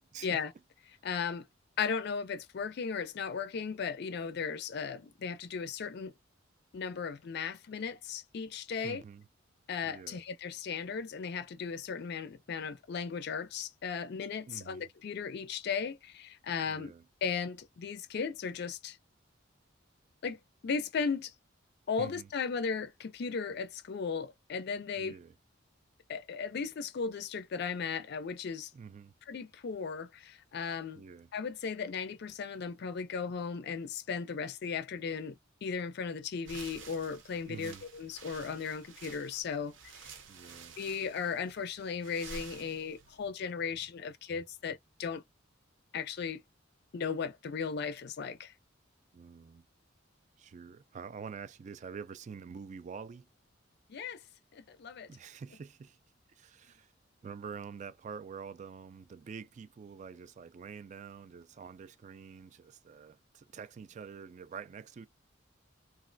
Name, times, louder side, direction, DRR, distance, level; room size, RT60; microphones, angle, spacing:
voice 1, 0.1-0.4 8.8-9.3 9.8-10.2 14.5-14.9 16.7-17.0 22.0-22.3 25.0-25.3 28.7-29.1 30.9-31.3 37.5-37.8 40.3-40.8 49.1-49.6 50.4-53.3 55.1-56.0 56.3-56.9 57.2-65.1, right 6 dB, 40° right, 0.3 m, -46 dB
voice 2, 1.0-1.5 1.8-6.1 6.7-9.0 9.7-16.9 17.2-19.0 20.2-21.3 21.9-25.2 26.1-28.7 29.3-31.0 31.3-39.7 40.0-40.1 40.8-45.2 45.9-46.4 46.9-48.5 53.9-54.2 54.5-55.1, left 6 dB, 55° left, 0.4 m, -36 dB
sound 1, 36.4-43.3, right 5 dB, 70° right, 0.8 m, -51 dB
3.1 x 2.4 x 2.5 m
head